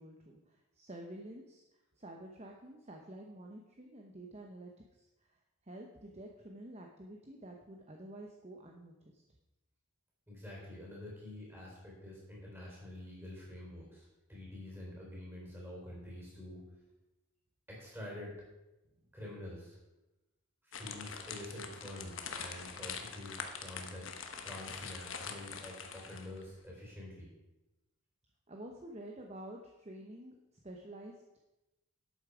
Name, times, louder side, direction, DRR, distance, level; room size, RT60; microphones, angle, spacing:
voice 1, 0.0-1.6 2.0-5.4 5.6-9.2 28.5-30.4 30.6-31.1, right 1 dB, 30° right, 1 dB, 0.9 m, -49 dB
voice 2, 10.3-16.6 17.7-18.4 19.1-19.8 20.6-24.1 24.4-27.3, left 1 dB, 10° right, -4 dB, 4.3 m, -47 dB
sound 1, 20.7-26.4, left 6 dB, 60° left, 1.1 m, -44 dB
11.5 x 8.4 x 5.0 m, 1.0 s
head